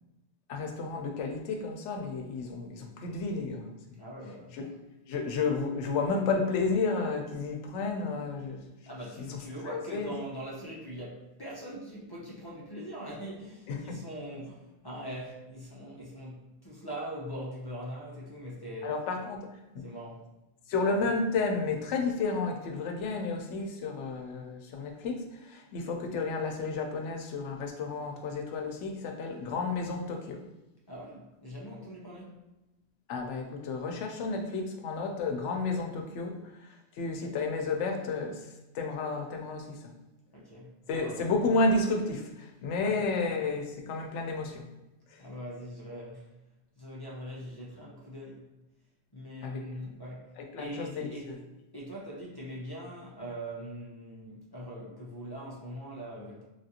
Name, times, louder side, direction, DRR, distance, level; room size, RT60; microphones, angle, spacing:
voice 1, 0.5-4.0 4.5-4.7 5.1-8.7 9.2-9.4 9.7-10.1 13.7-14.0 18.8-19.4 20.7-30.4 33.1-36.3 36.6-38.4 38.7-39.8 40.9-44.6 45.1-45.2 49.4-49.9 50.4-51.4, left 3 dB, 80° left, 3 dB, 0.9 m, -32 dB
voice 2, 4.0-4.6 8.8-18.9 19.8-20.3 30.9-32.4 40.3-41.3 42.8-43.0 45.2-46.3 46.8-48.5 49.1-51.3 51.7-56.4, equal, 30° left, -5 dB, 0.4 m, -42 dB
3.3 x 2.4 x 2.7 m, 1.0 s
omnidirectional pair, 1.2 m